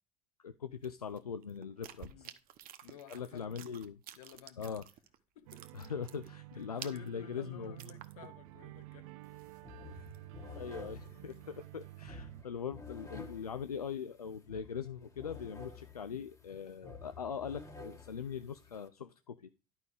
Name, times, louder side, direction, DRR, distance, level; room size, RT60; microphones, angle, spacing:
voice 1, 0.4-2.3 3.1-4.0 4.6-4.8 5.7-7.8 10.6-19.5, left 7 dB, 90° left, 0.4 m, -41 dB
sound 1, 0.8-5.2 5.4-8.5 8.8-8.9 9.2-10.4 10.8-11.7, right 11 dB, 50° right, 1.0 m, -52 dB
voice 2, 2.0-2.4 2.8-3.6 4.1-4.8 5.3-5.7 6.5-9.1 9.9-10.2 10.5-11.0 13.2-13.3, left 10 dB, 70° left, 1.0 m, -55 dB
sound 2, 5.5-12.4, right 17 dB, 65° right, 0.5 m, -51 dB
sound 3, 9.2-9.4 9.6-18.9, left 3 dB, 15° left, 1.8 m, -51 dB
11.0 x 5.4 x 4.8 m
figure-of-eight pair, 60°, 19 cm